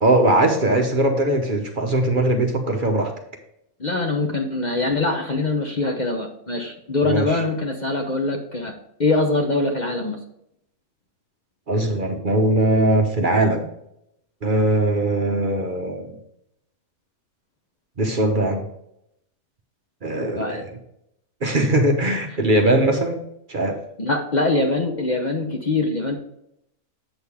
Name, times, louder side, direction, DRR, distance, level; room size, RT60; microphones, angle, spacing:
voice 1, 0.0-3.1 7.0-7.4 11.7-13.7 14.4-16.2 18.0-18.7 20.0-20.7 21.4-23.8, right 1 dB, 40° right, 4 dB, 1.0 m, -20 dB
voice 2, 3.8-8.7 9.0-10.2 20.4-20.6 24.0-26.2, left 2 dB, 40° left, 2 dB, 0.9 m, -23 dB
8.0 x 6.6 x 3.5 m, 0.77 s
omnidirectional pair, 1.4 m